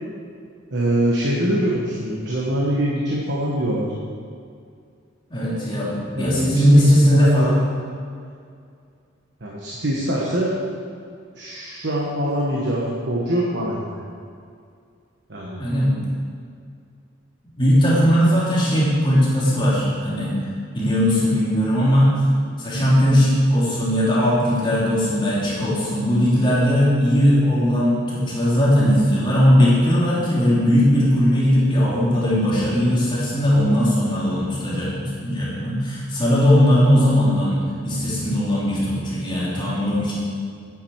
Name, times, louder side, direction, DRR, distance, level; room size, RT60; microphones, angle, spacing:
voice 1, 0.7-3.9 5.8-6.6 7.1-7.6 9.4-10.5 11.3-13.9 15.3-15.6, right 1 dB, 60° right, -4 dB, 1.3 m, -24 dB
voice 2, 5.3-7.6 15.5-15.9 17.5-20.4 20.7-22.2 22.6-40.1, equal, 25° left, -8 dB, 2.9 m, -18 dB
9.8 x 8.7 x 4.7 m, 2.3 s
head